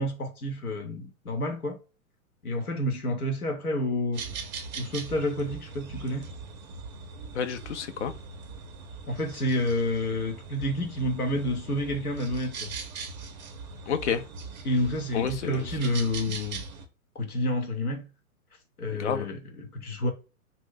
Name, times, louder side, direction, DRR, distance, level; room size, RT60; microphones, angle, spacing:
voice 1, 0.0-1.8 2.4-4.2 4.8-6.3 9.1-12.7 14.6-16.6 17.1-18.1 18.8-20.1, left 1 dB, 85° left, 0.9 m, -29 dB
sound 1, 4.1-16.9, right 4 dB, 30° right, 0.5 m, -41 dB
voice 2, 7.3-8.1 13.9-14.2 15.1-15.6 18.9-19.3, left 7 dB, 55° left, 0.5 m, -30 dB
2.6 x 2.0 x 3.7 m
figure-of-eight pair, 120°, 43 cm